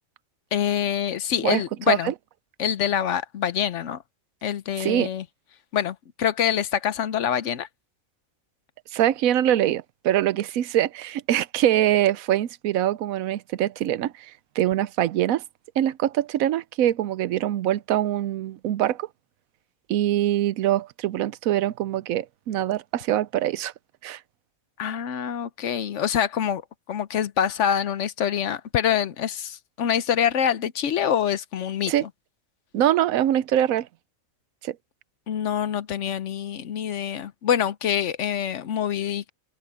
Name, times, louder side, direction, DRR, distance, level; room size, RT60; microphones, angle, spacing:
voice 1, 0.5-2.1 2.6-4.0 4.4-5.2 5.7-7.7 24.8-26.6 26.9-32.1 35.3-39.3, left 9 dB, 65° left, 1.0 m, -25 dB
voice 2, 4.8-5.1 8.9-14.3 14.6-15.4 15.8-19.1 19.9-23.7 24.0-24.2 31.9-32.0 32.7-33.9 34.6-34.8, right 12 dB, 80° right, 1.1 m, -23 dB
open air
omnidirectional pair, 1.4 m